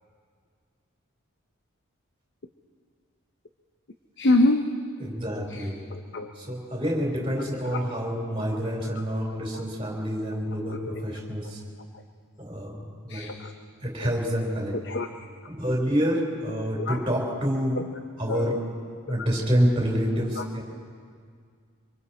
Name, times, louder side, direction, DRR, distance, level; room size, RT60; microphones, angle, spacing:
voice 1, 4.2-4.8 5.5-6.3 7.6-7.8 10.7-11.0 11.9-12.0 13.1-13.5 14.0-14.1 14.8-15.1 16.8-17.0 17.7-17.8 18.3-18.6 19.1-19.3 20.4-20.5, left 2 dB, 55° left, 6 dB, 0.7 m, -26 dB
voice 2, 5.0-5.8 6.4-11.6 12.4-13.4 13.8-14.7 15.5-17.8 18.2-18.6 19.1-20.6, equal, 25° right, -2 dB, 4.0 m, -27 dB
25.5 x 24.0 x 4.3 m, 2.1 s
head